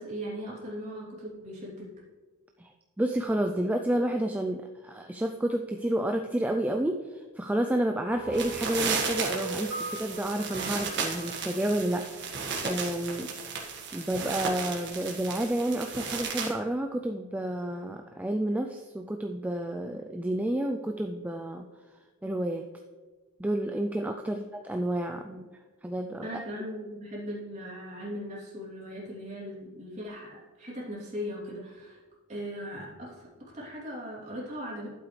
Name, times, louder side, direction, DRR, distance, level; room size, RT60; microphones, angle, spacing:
voice 1, 0.0-1.9 24.2-24.4 26.2-32.0 32.3-34.9, equal, 30° right, -6 dB, 3.0 m, -39 dB
voice 2, 3.0-12.3 12.6-13.3 13.9-21.7 22.2-22.6 23.4-25.5 25.8-26.4, right 1 dB, 5° right, 4 dB, 0.3 m, -30 dB
sound 1, 8.1-12.4, right 3 dB, 55° left, 3.3 m, -40 dB
sound 2, 8.3-16.5, right 5 dB, 50° right, 1.7 m, -34 dB
12.0 x 7.7 x 3.2 m, 1.4 s
head